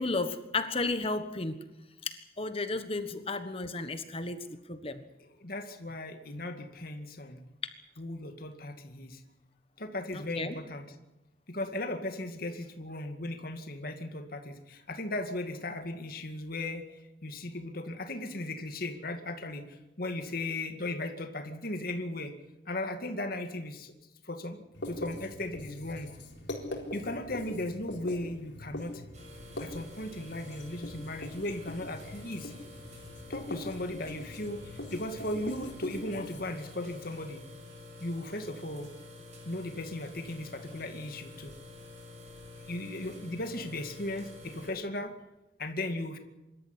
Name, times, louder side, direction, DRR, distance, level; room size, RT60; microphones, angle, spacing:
voice 1, 0.0-1.6 2.0-5.0 10.1-10.6, left 3 dB, 30° left, 10 dB, 1.4 m, -33 dB
voice 2, 5.4-7.4 8.0-9.2 9.8-10.9 11.5-22.3 22.7-23.9 24.2-26.1 26.9-29.0 29.6-32.5 33.3-37.4 38.0-38.9 39.5-41.5 42.6-45.1 45.6-46.2, left 1 dB, 55° left, 6 dB, 2.2 m, -37 dB
Writing, 24.7-36.4, left 1 dB, 80° left, 4.2 m, -42 dB
sound 1, 29.1-44.7, left 2 dB, 40° right, 7.2 m, -49 dB
25.5 x 13.5 x 9.8 m, 0.98 s
head